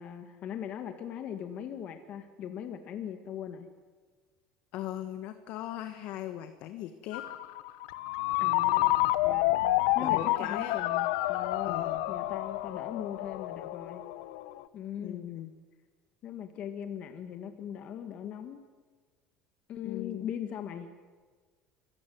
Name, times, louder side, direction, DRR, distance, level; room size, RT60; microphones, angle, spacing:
voice 1, 0.0-3.7 8.4-9.6 9.9-14.0 14.7-15.3 16.2-18.6 19.7-20.9, left 9 dB, 45° left, 7 dB, 1.9 m, -40 dB
voice 2, 4.7-7.2 10.0-10.8 11.6-12.0 15.0-15.5 19.8-20.3, left 12 dB, 65° left, 9 dB, 1.5 m, -39 dB
Ringtone, 7.1-14.6, left 16 dB, 85° left, 1.1 m, -29 dB
25.5 x 17.0 x 9.5 m, 1.5 s
cardioid pair, 130°, 3 cm